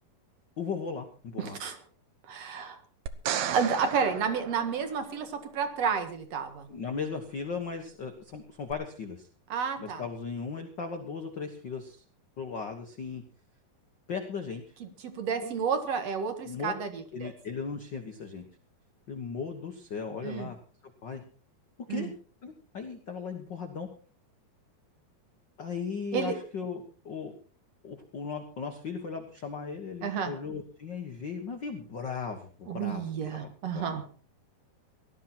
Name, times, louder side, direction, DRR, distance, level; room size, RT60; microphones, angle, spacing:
voice 1, 0.6-1.6 6.7-9.3 9.8-12.0 12.4-13.2 14.1-14.6 15.4-15.6 16.4-16.7 17.1-18.5 19.1-20.6 21.0-21.2 21.9-22.1 22.4-23.9 25.6-27.3 27.8-34.0, left 5 dB, 90° left, 5 dB, 0.9 m, -37 dB
voice 2, 1.4-1.8 2.3-2.8 3.5-6.7 9.5-10.0 14.8-17.3 20.2-20.5 21.9-22.1 26.1-26.3 30.0-30.3 32.7-34.0, right 6 dB, 50° right, 8 dB, 2.4 m, -31 dB
sound 1, 3.1-5.4 8.7-8.8, right 9 dB, 70° right, 1.7 m, -34 dB
18.0 x 12.5 x 4.4 m, 0.40 s
omnidirectional pair, 4.3 m